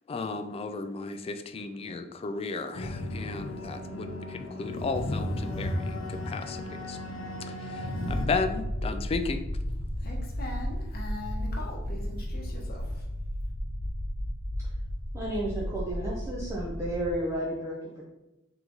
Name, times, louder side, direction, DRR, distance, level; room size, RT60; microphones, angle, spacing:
voice 1, 0.1-7.0 7.6-9.4, left 4 dB, 30° left, 8 dB, 0.3 m, -34 dB
sound 1, 2.7-8.3, left 1 dB, 80° left, 0.6 m, -34 dB
sound 2, 8.0-17.1, equal, 65° left, 1.2 m, -34 dB
voice 2, 10.0-13.0, left 1 dB, 50° left, -1 dB, 0.9 m, -41 dB
voice 3, 15.1-18.0, right 1 dB, 15° right, -5 dB, 0.6 m, -32 dB
3.6 x 3.1 x 3.9 m, 0.94 s
head